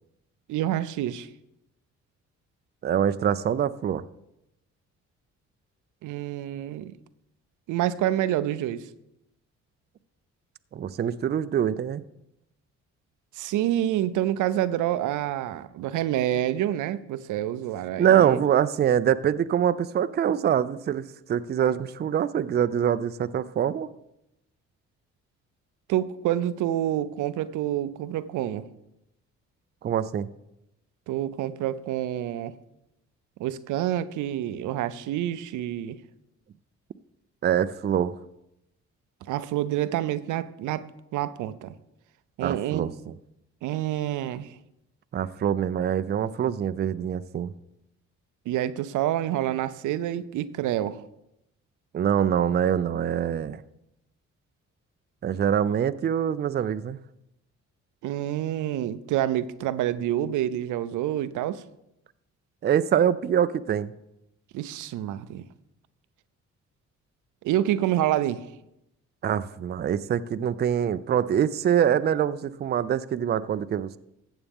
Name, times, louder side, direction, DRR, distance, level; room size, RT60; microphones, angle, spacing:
voice 1, 0.5-1.3 6.0-6.9 7.7-8.9 13.4-18.4 25.9-28.7 31.1-32.5 33.4-36.0 39.3-40.9 41.1-41.7 42.4-42.9 43.6-44.6 48.5-51.0 58.0-61.6 64.5-65.4 67.4-68.5, right 12 dB, 85° right, 13 dB, 0.6 m, -27 dB
voice 2, 2.8-4.0 10.7-12.0 18.0-23.9 29.8-30.3 37.4-38.1 42.4-43.1 45.1-47.5 51.9-53.6 55.2-57.0 62.6-63.9 69.2-74.0, right 9 dB, 35° right, 13 dB, 0.4 m, -24 dB
14.0 x 7.9 x 3.6 m, 0.85 s
cardioid pair, 90°, 30 cm